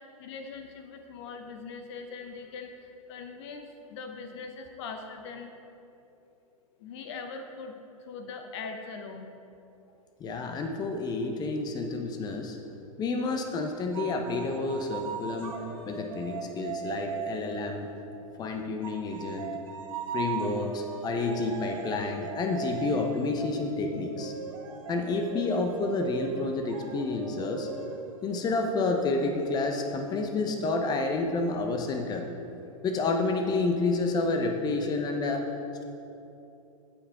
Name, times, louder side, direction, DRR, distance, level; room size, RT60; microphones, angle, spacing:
voice 1, 0.2-2.7 3.1-5.5 6.8-7.7 8.0-9.3, left 4 dB, 50° left, 6 dB, 0.8 m, -41 dB
voice 2, 10.2-12.6 13.0-15.6 15.9-17.9 18.4-19.6 20.1-24.3 24.9-27.7 28.2-32.3 32.8-35.4, left 3 dB, 20° left, 4 dB, 0.8 m, -29 dB
sound 1, 13.9-18.3 18.8-30.2, right 6 dB, 65° right, 1.3 m, -39 dB
16.5 x 5.7 x 3.7 m, 2.8 s
figure-of-eight pair, 100°, 18 cm